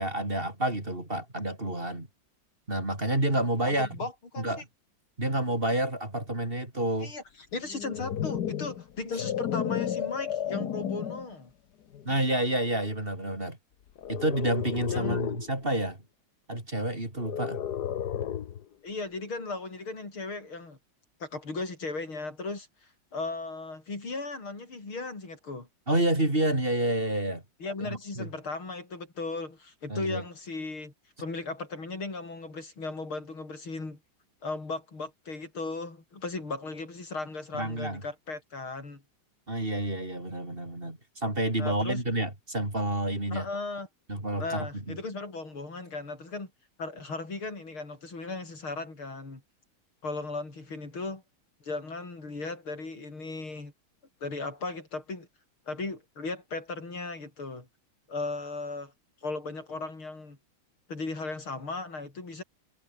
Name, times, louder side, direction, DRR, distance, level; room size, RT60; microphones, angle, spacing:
voice 1, 0.0-2.1 2.7-3.9 4.4-4.6 5.2-7.1 12.0-13.6 14.1-16.0 16.5-17.6 25.9-27.4 27.8-28.3 29.9-30.2 37.5-38.0 39.5-43.4 44.1-45.0, right 1 dB, 25° right, 5.1 m, -29 dB
voice 2, 3.6-4.5 7.0-7.2 7.5-11.5 14.9-15.2 18.8-20.8 21.2-22.7 23.1-25.7 27.6-30.9 31.2-34.0 34.4-39.0 41.6-42.0 43.3-43.9 44.4-46.5 46.8-49.4 50.0-51.2 51.6-53.7 54.2-55.3 55.7-57.7 58.1-58.9 59.2-60.4 60.9-62.4, left 3 dB, 80° left, 6.7 m, -36 dB
sound 1, 7.6-11.3 11.9-12.2 14.0-15.5 17.2-18.6, left 10 dB, 55° left, 1.5 m, -33 dB
omnidirectional pair, 2.3 m